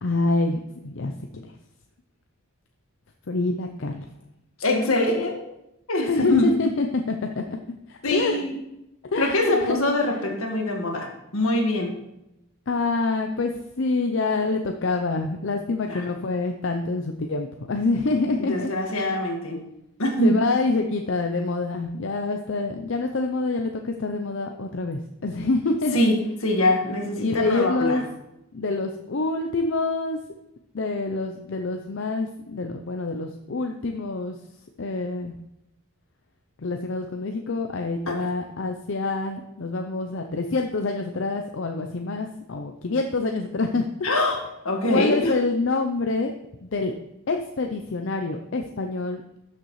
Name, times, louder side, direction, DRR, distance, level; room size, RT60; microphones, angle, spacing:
voice 1, 0.0-1.1 1.4-1.5 3.3-4.1 6.1-7.6 7.9-8.4 9.1-9.8 12.7-13.5 13.8-19.1 20.2-26.1 27.2-28.0 28.5-30.2 30.7-34.4 34.8-35.3 36.6-43.8 44.9-46.3 46.6-46.9 47.3-49.2, left 3 dB, 60° left, 4 dB, 0.6 m, -26 dB
voice 2, 4.6-5.4 5.9-6.5 8.0-8.6 9.2-11.1 11.3-11.9 15.9-16.0 18.4-19.6 20.0-20.4 25.9-26.1 26.4-28.0 38.1-38.2 44.0-44.4 44.7-45.3, left 1 dB, 80° left, 2 dB, 1.7 m, -23 dB
12.0 x 6.6 x 3.2 m, 0.87 s
head